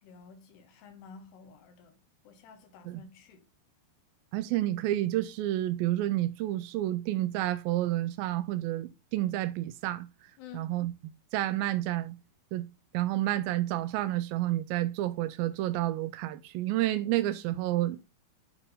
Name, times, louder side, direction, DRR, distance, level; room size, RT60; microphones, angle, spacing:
voice 1, 0.0-1.9 2.2-3.4 10.4-10.8, left 6 dB, 80° left, 3.4 m, -51 dB
voice 2, 4.3-10.1 10.5-10.9 11.3-12.2 12.5-12.7 12.9-18.0, right 15 dB, 85° right, 2.0 m, -30 dB
8.9 x 3.6 x 5.5 m
omnidirectional pair, 4.7 m